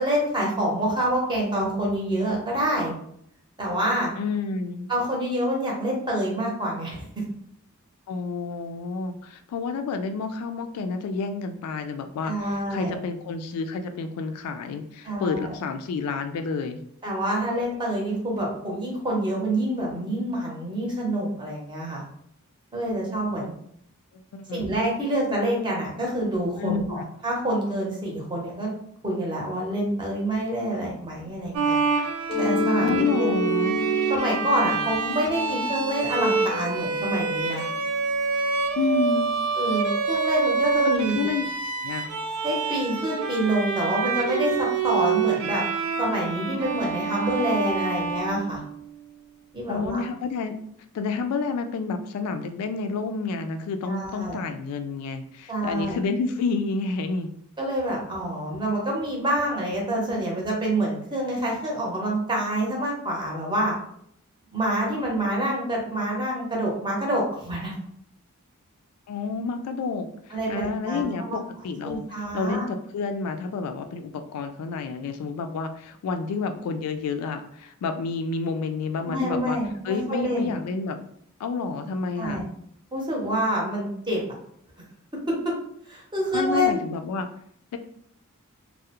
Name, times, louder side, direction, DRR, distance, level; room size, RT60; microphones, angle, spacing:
voice 1, 0.0-2.9 3.6-4.1 4.9-7.2 12.2-13.0 15.0-15.5 17.0-22.0 22.7-23.5 24.5-28.7 29.0-31.8 32.4-33.4 34.1-37.7 39.6-41.3 42.4-45.6 46.0-48.6 49.5-50.0 53.8-54.4 55.5-56.0 57.6-63.7 64.5-67.7 70.3-71.4 71.8-72.6 79.0-80.5 82.2-82.4 82.9-84.2 85.3-85.5 85.9-86.8, right 1 dB, 20° right, -2 dB, 0.7 m, -27 dB
voice 2, 4.2-4.9 8.1-16.8 24.3-24.7 26.6-27.0 32.8-33.8 38.8-39.3 40.8-41.5 41.8-42.1 49.7-50.5 50.9-57.3 69.1-70.1 70.5-72.0 72.3-79.6 79.8-81.0 81.4-82.5 86.3-87.3, left 4 dB, 85° left, 11 dB, 0.3 m, -29 dB
Bowed string instrument, 31.5-49.0, right 5 dB, 85° right, 0.4 m, -27 dB
Mallet percussion, 32.3-37.8, left 4 dB, 25° left, 0.5 m, -30 dB
2.3 x 2.0 x 2.8 m, 0.69 s
head